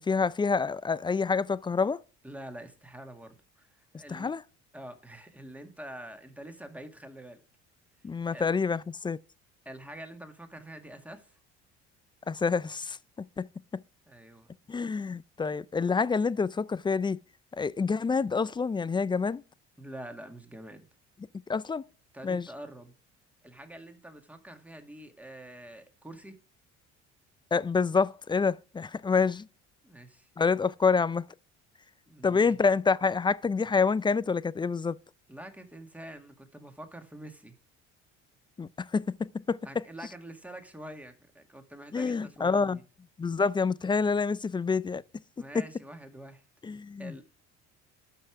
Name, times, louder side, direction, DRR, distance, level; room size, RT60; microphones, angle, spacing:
voice 1, 0.0-2.0 4.1-4.4 8.0-9.2 12.3-13.0 13.4-13.5 14.7-17.2 17.5-19.4 21.5-21.9 22.2-22.5 27.5-29.5 30.4-31.3 32.2-35.0 38.6-39.6 41.9-42.8 43.2-45.0 46.6-47.2, left 5 dB, 15° left, 0.4 m, -27 dB
voice 2, 2.2-4.3 4.7-7.4 8.3-8.5 9.7-11.4 14.1-14.5 19.8-20.9 22.1-22.9 23.4-26.4 29.8-30.3 32.1-32.6 35.3-37.6 39.6-42.8 45.4-46.4 47.0-47.2, right 1 dB, 5° right, 2.0 m, -46 dB
12.0 x 5.6 x 4.8 m
supercardioid pair, 80°, 33 cm